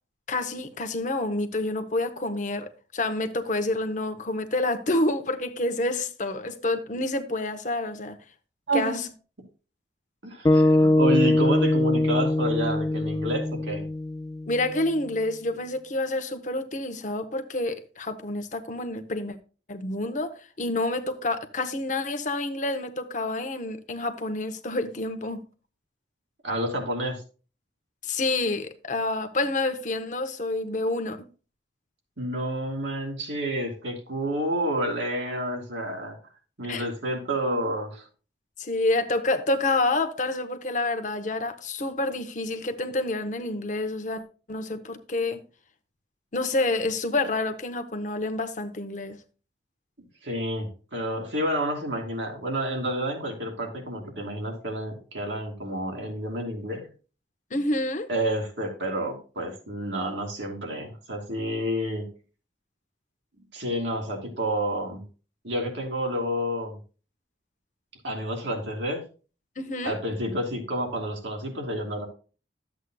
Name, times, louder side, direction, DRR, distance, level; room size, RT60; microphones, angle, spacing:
voice 1, 0.3-8.2 8.7-9.1 14.5-19.4 19.7-20.3 20.6-25.4 28.0-31.3 36.7-36.9 38.6-44.2 44.5-45.4 46.3-49.2 57.5-58.1 69.6-70.0, left 2 dB, 45° left, 0.9 m, -28 dB
voice 2, 8.7-9.1 10.2-13.8 26.4-27.2 32.2-36.2 36.6-38.1 50.2-56.9 58.1-62.1 63.5-65.0 65.4-66.8 68.0-69.0 69.8-72.1, right 1 dB, 90° right, 2.8 m, -29 dB
sound 1, 10.4-14.8, left 1 dB, 20° left, 0.3 m, -22 dB
12.5 x 8.0 x 2.3 m
head